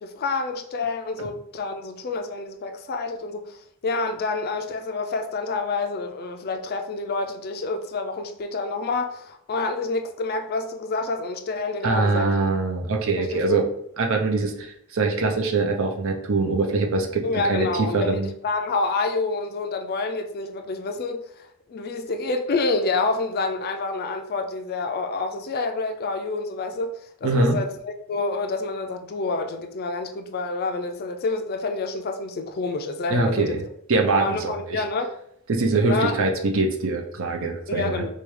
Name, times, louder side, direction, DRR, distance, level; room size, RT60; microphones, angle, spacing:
voice 1, 0.0-12.3 13.2-13.6 17.2-33.5 34.2-35.1 35.8-36.2 37.7-38.1, left 3 dB, 45° left, 0.4 m, -28 dB
voice 2, 11.8-13.6 14.0-18.3 27.2-27.6 33.1-33.6 33.9-34.8 35.5-38.0, right 3 dB, 65° right, 0.6 m, -23 dB
4.6 x 2.3 x 3.2 m
head